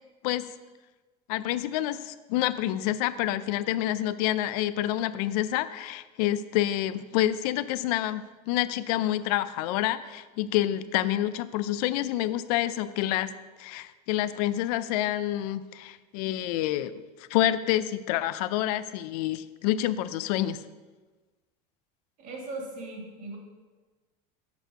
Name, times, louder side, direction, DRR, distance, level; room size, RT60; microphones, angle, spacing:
voice 1, 1.3-13.3 13.6-17.0 17.3-20.6, left 13 dB, 80° left, 14 dB, 0.4 m, -28 dB
voice 2, 22.2-23.4, right 2 dB, 40° right, 0 dB, 2.0 m, -38 dB
7.0 x 4.5 x 6.4 m, 1.3 s
cardioid pair, 160°, 19 cm